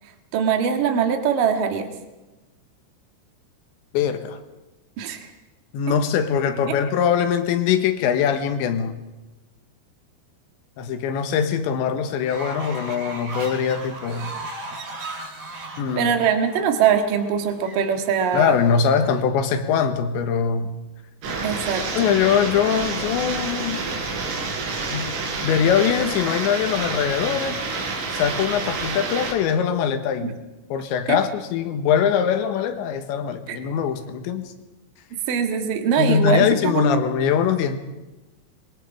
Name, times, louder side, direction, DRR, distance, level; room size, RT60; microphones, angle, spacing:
voice 1, 0.3-1.9 5.0-5.3 5.9-6.0 6.7-6.8 16.0-18.6 21.4-22.1 30.2-30.3 31.1-31.2 33.5-33.6 35.3-37.0, right 7 dB, 55° right, 5 dB, 2.8 m, -22 dB
voice 2, 3.9-4.4 5.7-9.0 10.8-14.3 15.8-16.1 18.3-20.8 21.9-23.8 24.9-25.1 25.4-27.6 28.1-30.3 30.7-34.5 36.0-37.8, left 7 dB, 70° left, 8 dB, 3.3 m, -22 dB
Fowl, 12.2-19.2, right 2 dB, 40° right, 4.4 m, -37 dB
sound 1, 21.2-29.3, right 3 dB, 85° right, 6.4 m, -28 dB
25.0 x 22.5 x 4.9 m, 1.1 s
omnidirectional pair, 5.7 m